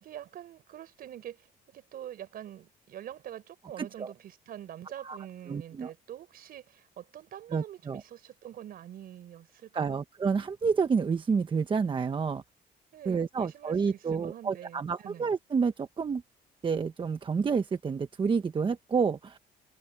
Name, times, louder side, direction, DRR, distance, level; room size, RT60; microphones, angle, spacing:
voice 1, 0.0-10.0 12.9-15.3, right 11 dB, 60° right, 4.6 m, -45 dB
voice 2, 3.8-4.1 5.0-5.2 5.5-5.9 7.5-8.0 9.7-12.4 13.0-16.2 16.6-19.4, right 5 dB, 30° right, 1.1 m, -29 dB
cardioid pair, 110°, 17 cm